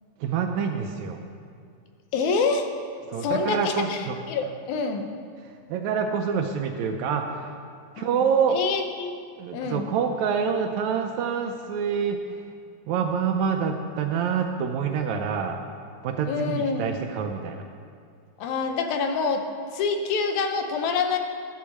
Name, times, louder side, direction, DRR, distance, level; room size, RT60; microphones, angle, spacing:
voice 1, 0.2-1.2 3.1-4.2 5.7-7.6 8.0-8.6 9.4-12.4 12.9-15.6 16.0-17.7, right 6 dB, 80° right, 4 dB, 1.6 m, -26 dB
voice 2, 2.1-2.7 3.2-5.1 8.0-9.1 9.5-9.9 16.3-16.9 18.4-19.5 19.7-21.2, left 4 dB, 75° left, 5 dB, 2.0 m, -26 dB
11.5 x 4.6 x 7.2 m, 2.3 s
omnidirectional pair, 3.7 m